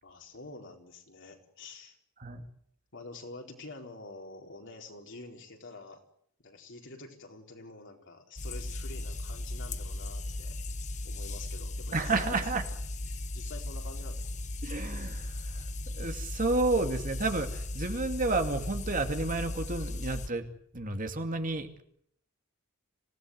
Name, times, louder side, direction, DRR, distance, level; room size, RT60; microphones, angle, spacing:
voice 1, 0.0-2.0 2.9-6.0 6.4-10.6 11.0-12.4 13.1-14.3, left 2 dB, 55° left, 2 dB, 4.4 m, -47 dB
sound 1, 8.4-20.3, left 1 dB, 30° left, 1.0 m, -37 dB
voice 2, 11.9-12.6 14.6-15.7 15.9-20.4 20.7-21.8, right 3 dB, 35° right, 6 dB, 2.4 m, -31 dB
26.5 x 17.5 x 9.4 m, 0.70 s
head